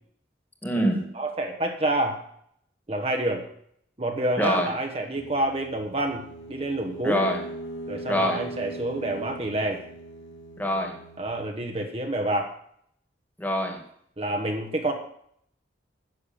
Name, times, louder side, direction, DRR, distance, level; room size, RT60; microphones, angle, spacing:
voice 1, 0.6-1.1 4.4-4.7 7.0-7.4 8.1-8.4 10.6-11.0 13.4-13.8, equal, 10° left, 3 dB, 1.8 m, -24 dB
voice 2, 1.1-2.2 2.9-3.4 4.0-7.3 7.9-9.8 11.2-12.5 14.2-14.9, right 1 dB, 30° right, 3 dB, 1.1 m, -28 dB
sound 1, 5.1-11.7, right 1 dB, 85° left, 2.1 m, -40 dB
10.5 x 6.8 x 8.6 m, 0.68 s
head